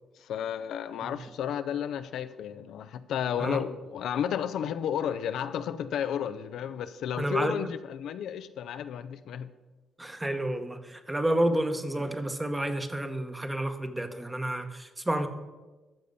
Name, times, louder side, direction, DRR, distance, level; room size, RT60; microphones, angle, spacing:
voice 1, 0.2-9.5, left 9 dB, 75° left, 0.5 m, -32 dB
voice 2, 7.2-7.7 10.0-15.3, right 1 dB, 15° right, 1.1 m, -30 dB
13.5 x 6.7 x 5.4 m
cardioid pair, 90°, 0 cm